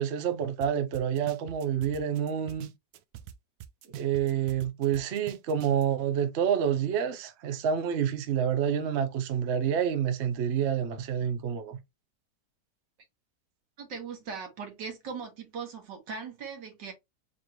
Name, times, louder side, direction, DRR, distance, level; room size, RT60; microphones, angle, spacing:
voice 1, 0.0-2.7 3.9-11.8, right 8 dB, 55° right, 0.8 m, -28 dB
sound 1, 0.6-0.7 0.9-3.3 3.6-5.8, right 13 dB, 70° right, 1.0 m, -44 dB
voice 2, 13.8-16.9, right 5 dB, 85° right, 2.0 m, -39 dB
4.6 x 2.9 x 2.9 m
omnidirectional pair, 1.9 m